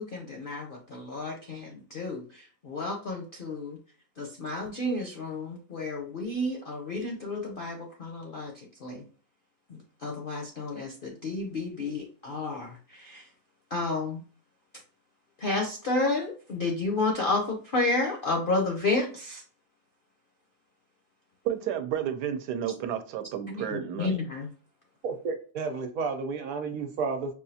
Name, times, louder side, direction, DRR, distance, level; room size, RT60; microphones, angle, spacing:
voice 1, 0.0-3.8 4.2-9.0 9.7-13.3 13.7-14.2 14.7-14.8 15.4-19.4 23.5-24.5, left 2 dB, 60° left, 1 dB, 0.5 m, -31 dB
voice 2, 21.4-24.2, right 9 dB, 85° right, 9 dB, 1.2 m, -31 dB
voice 3, 25.0-27.3, right 4 dB, 65° right, 5 dB, 1.1 m, -32 dB
5.3 x 2.4 x 2.7 m, 0.39 s
omnidirectional pair, 1.7 m